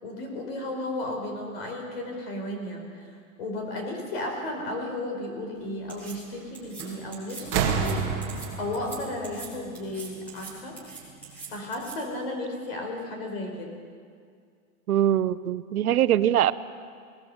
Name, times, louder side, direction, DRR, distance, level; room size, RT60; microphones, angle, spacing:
voice 1, 0.0-3.1 3.4-8.0 8.6-10.8 11.5-13.7, left 1 dB, 45° left, 2 dB, 5.2 m, -34 dB
sound 1, 5.9-6.1 6.5-6.8 7.1-7.4 7.7-7.9 8.2-8.5 8.7-9.0 9.2-9.5 9.7-10.5 10.8-11.9, right 5 dB, 5° left, 4.1 m, -42 dB
sound 2, 6.8-7.1 7.4-10.2 11.3-11.4, right 6 dB, 30° right, 2.3 m, -29 dB
voice 2, 14.9-16.5, right 11 dB, 90° right, 14 dB, 1.0 m, -22 dB
21.0 x 19.0 x 8.1 m, 2.1 s
supercardioid pair, 175°, 42 cm